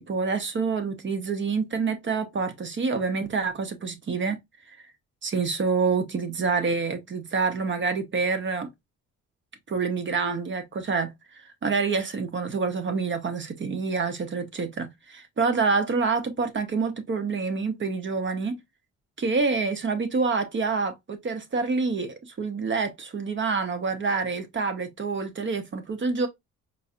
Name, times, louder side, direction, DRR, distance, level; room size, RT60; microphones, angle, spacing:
voice 1, 0.0-4.4 5.2-8.7 9.7-18.6 19.2-26.3, right 4 dB, 40° right, 0.9 m, -27 dB
4.7 x 2.6 x 2.4 m
cardioid pair, 90°, 30 cm